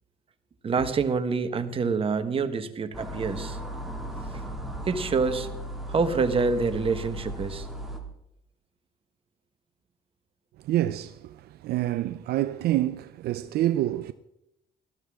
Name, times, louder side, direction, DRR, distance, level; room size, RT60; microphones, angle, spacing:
voice 1, 0.6-3.6 4.3-4.4 4.9-5.5 5.9-7.7, right 4 dB, 35° right, 1.3 m, -26 dB
sound 1, 2.9-8.0, right 1 dB, ahead, 2.5 m, -36 dB
voice 2, 10.6-14.1, right 14 dB, 70° right, 0.5 m, -27 dB
19.0 x 13.0 x 3.6 m
cardioid pair, 110°, 17 cm